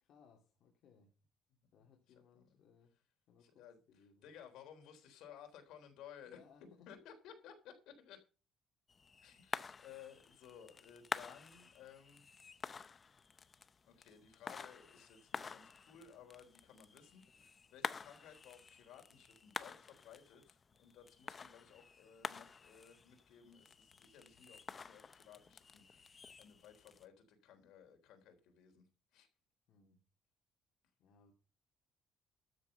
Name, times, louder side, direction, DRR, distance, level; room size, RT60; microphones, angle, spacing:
voice 1, 0.0-1.1 1.7-3.0 3.3-4.3 6.2-7.0 29.7-30.0 31.0-31.3, left 6 dB, 60° left, 2.3 m, -66 dB
voice 2, 3.4-6.4 6.9-8.2 9.2-12.2 12.5-12.8 13.9-28.9 29.1-29.3, left 8 dB, 85° left, 3.5 m, -58 dB
sound 1, 8.9-27.0, left 5 dB, 25° left, 0.6 m, -49 dB
13.0 x 6.9 x 6.7 m
cardioid pair, 155°, 0 cm